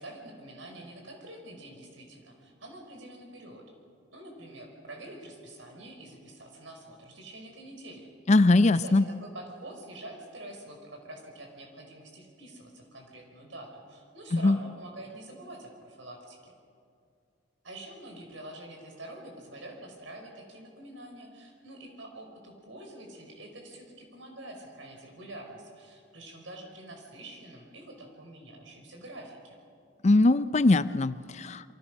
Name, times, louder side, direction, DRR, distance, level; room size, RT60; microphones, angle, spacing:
voice 1, 0.0-3.6 4.1-8.4 8.7-16.5 17.6-29.6, right 1 dB, 75° right, 1 dB, 5.6 m, -46 dB
voice 2, 8.3-9.0 14.3-14.6 30.0-31.7, left 2 dB, 35° left, 14 dB, 0.5 m, -21 dB
28.0 x 24.0 x 6.5 m, 2.3 s
head